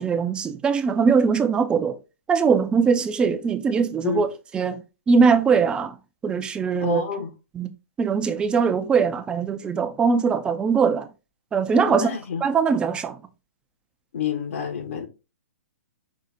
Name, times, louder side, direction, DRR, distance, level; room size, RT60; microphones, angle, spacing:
voice 1, 0.0-2.0 2.3-4.3 4.5-4.8 5.1-5.9 6.2-7.0 7.6-7.7 8.0-11.1 11.5-12.1 12.4-13.2, right 5 dB, 10° right, 0.4 m, -21 dB
voice 2, 6.8-7.3 11.9-12.4 14.1-15.1, left 6 dB, 65° left, 1.3 m, -28 dB
5.5 x 2.4 x 3.9 m
hypercardioid pair, 145°, 8 cm